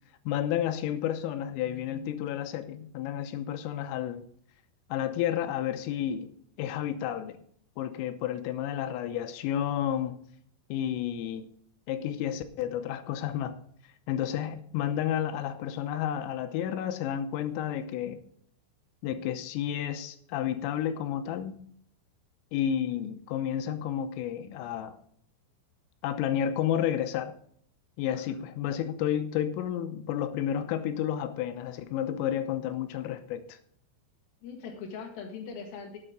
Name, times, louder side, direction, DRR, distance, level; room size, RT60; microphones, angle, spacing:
voice 1, 0.3-4.3 4.9-6.3 6.6-7.4 7.8-10.2 10.7-11.5 11.9-13.6 14.1-18.2 19.0-21.6 22.5-25.0 26.0-27.4 28.0-33.6, left 10 dB, 85° left, 3.5 m, -31 dB
voice 2, 34.4-36.0, left 5 dB, 60° left, 3.1 m, -41 dB
12.5 x 8.7 x 5.0 m
omnidirectional pair, 5.8 m